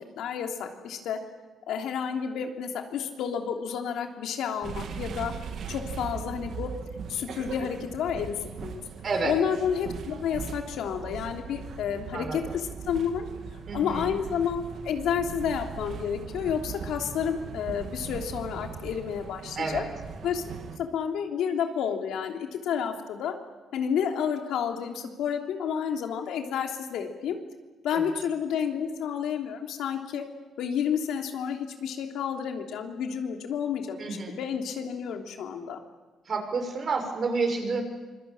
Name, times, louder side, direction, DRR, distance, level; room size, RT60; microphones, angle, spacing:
voice 1, 0.1-1.2 1.7-5.3 5.7-6.7 7.1-8.3 8.6-8.8 9.2-13.3 13.7-19.8 20.2-20.4 20.8-23.3 23.7-27.4 27.8-30.3 30.6-34.0 34.4-35.8, left 7 dB, 80° left, 3 dB, 3.2 m, -30 dB
sound 1, 4.6-20.8, right 6 dB, 65° right, 2.5 m, -39 dB
voice 2, 9.0-9.4 12.1-12.4 13.7-14.2 19.5-19.9 27.9-28.0 34.0-34.4 36.2-37.8, right 4 dB, 50° right, 4 dB, 6.7 m, -29 dB
26.0 x 22.5 x 8.9 m, 1.2 s
cardioid pair, 90°, 0 cm